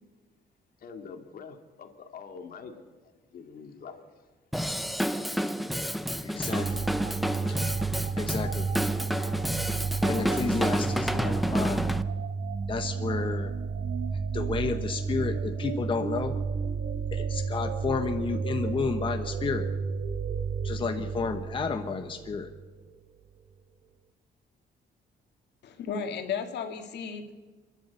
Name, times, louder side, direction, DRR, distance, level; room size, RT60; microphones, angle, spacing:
voice 1, 0.8-2.8 3.3-4.0, left 5 dB, 55° left, 5 dB, 2.2 m, -44 dB
Drum kit / Drum, 4.5-12.0, equal, ahead, 0.6 m, -30 dB
voice 2, 6.2-6.9 7.5-7.6 8.2-8.7 10.0-11.8 12.7-13.5 14.3-16.4 17.1-19.7 20.6-22.5, left 4 dB, 30° left, 6 dB, 1.0 m, -31 dB
sound 1, 6.4-22.8, right 5 dB, 75° right, 1.4 m, -32 dB
voice 3, 25.6-27.4, left 6 dB, 75° left, 5 dB, 2.3 m, -34 dB
28.5 x 11.0 x 8.3 m, 1.3 s
cardioid pair, 165°, 18 cm